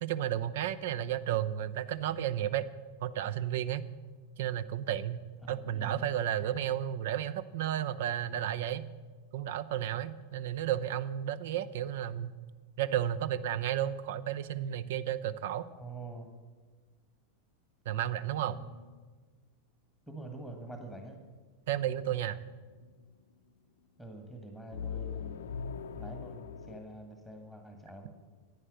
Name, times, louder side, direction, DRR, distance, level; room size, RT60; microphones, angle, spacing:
voice 1, 0.0-2.7 3.0-3.8 4.4-5.2 5.5-8.9 9.3-12.3 12.8-15.7 17.9-18.6 21.7-22.4, right 11 dB, 55° right, 16 dB, 0.6 m, -32 dB
voice 2, 5.4-6.1 15.7-16.3 18.5-18.8 20.1-21.2 24.0-25.5 25.9-28.1, right 2 dB, 5° right, 3 dB, 1.7 m, -45 dB
sound 1, 21.8-22.6 24.7-26.8, left 6 dB, 65° left, 0.6 m, -40 dB
11.0 x 9.7 x 7.4 m, 1.4 s
figure-of-eight pair, 90°, 0 cm